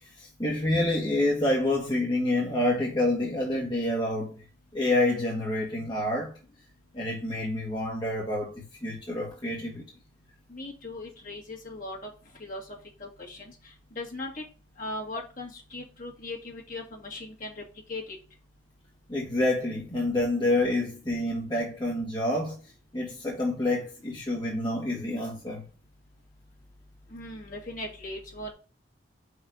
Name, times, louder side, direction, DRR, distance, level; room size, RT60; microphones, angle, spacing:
voice 1, 0.0-4.4 4.7-6.4 6.9-9.8 19.1-22.6 22.9-25.6, left 1 dB, 25° left, 1.5 m, -28 dB
voice 2, 10.5-12.1 12.4-12.6 13.0-13.5 14.0-14.4 14.8-17.5 17.9-18.0 27.1-28.5, left 2 dB, 45° left, 2.1 m, -38 dB
5.4 x 4.8 x 5.0 m
head